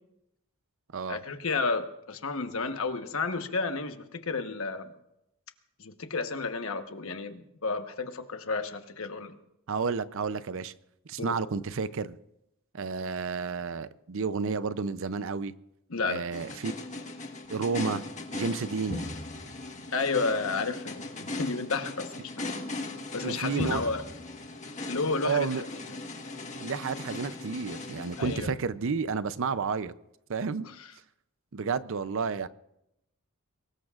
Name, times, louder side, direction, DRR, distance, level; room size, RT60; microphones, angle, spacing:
voice 1, 1.1-4.9 5.8-9.3 11.2-11.4 15.9-16.2 19.9-21.1 21.4-22.5 23.1-24.0 24.9-25.7 28.2-28.5 30.6-30.9, left 4 dB, 65° left, 7 dB, 1.2 m, -31 dB
voice 2, 9.7-10.7 11.1-12.2 12.7-15.5 16.0-16.7 17.5-18.0 18.3-19.1 23.2-23.8 25.2-25.6 26.6-29.9 30.3-30.7 31.5-32.5, right 5 dB, 65° right, 14 dB, 0.6 m, -31 dB
sound 1, 16.3-29.1, left 2 dB, 35° left, 1.4 m, -38 dB
23.0 x 19.5 x 2.5 m, 0.86 s
head